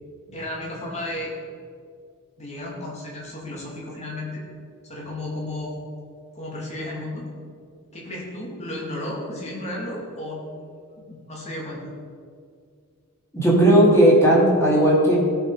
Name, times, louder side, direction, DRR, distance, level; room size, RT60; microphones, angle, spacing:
voice 1, 0.3-1.3 2.4-4.4 4.8-5.8 6.3-7.3 7.9-10.5 11.1-11.8, left 1 dB, 30° left, -3 dB, 2.7 m, -33 dB
voice 2, 13.3-15.2, right 1 dB, 10° left, -5 dB, 2.8 m, -16 dB
16.5 x 5.8 x 4.9 m, 2.3 s
head